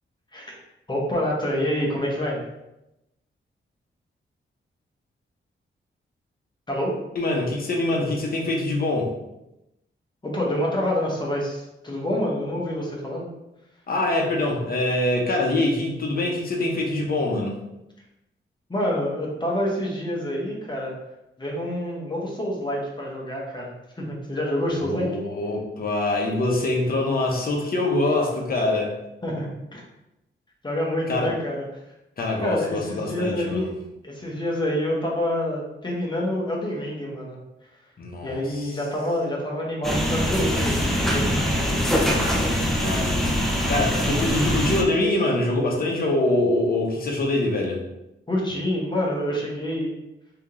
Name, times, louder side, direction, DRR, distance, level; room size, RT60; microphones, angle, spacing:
voice 1, 0.9-2.4 6.7-6.9 10.2-13.3 18.7-21.0 21.4-25.1 29.2-29.8 30.6-31.7 32.4-33.7 34.0-37.4 38.2-42.0 48.3-49.9, left 1 dB, 20° left, -3 dB, 1.0 m, -27 dB
voice 2, 7.2-9.1 13.9-17.6 24.7-28.9 31.1-31.3 32.2-33.7 38.0-38.7 42.8-43.3 43.7-47.8, left 2 dB, 45° left, 0 dB, 0.8 m, -24 dB
sound 1, 39.8-44.8, equal, ahead, 0.5 m, -23 dB
3.5 x 2.8 x 3.6 m, 0.91 s
wide cardioid pair, 130°, 21 cm